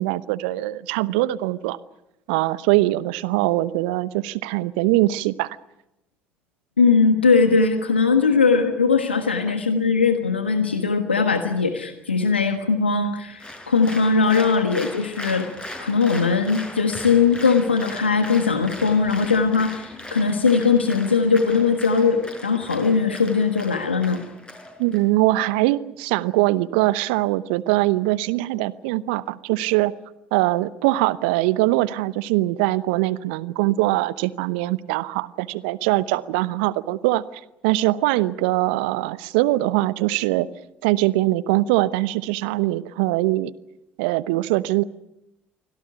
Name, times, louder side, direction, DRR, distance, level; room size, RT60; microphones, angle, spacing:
voice 1, 0.0-1.8 2.3-5.6 24.8-29.9 30.3-40.5 40.8-43.5 44.0-44.8, right 18 dB, 70° right, 18 dB, 0.8 m, -22 dB
voice 2, 6.8-15.5 15.8-24.2, left 5 dB, 90° left, 7 dB, 1.4 m, -20 dB
Applause, 13.4-25.0, left 1 dB, 15° left, 6.9 m, -38 dB
25.0 x 17.0 x 9.8 m, 0.88 s
figure-of-eight pair, 55°, 6 cm